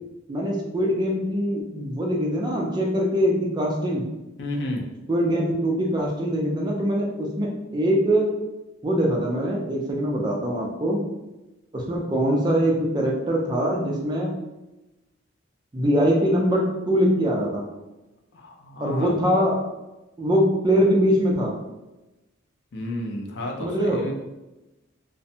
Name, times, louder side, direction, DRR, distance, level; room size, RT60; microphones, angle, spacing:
voice 1, 0.3-4.0 5.1-8.3 8.8-11.1 11.7-14.3 15.7-17.6 18.8-19.6 20.2-21.5 23.6-24.0, equal, 20° right, -2 dB, 0.3 m, -23 dB
voice 2, 4.4-4.9 18.3-19.2 22.7-24.1, left 1 dB, 55° left, 0 dB, 0.4 m, -32 dB
2.5 x 2.1 x 2.7 m, 1.0 s
head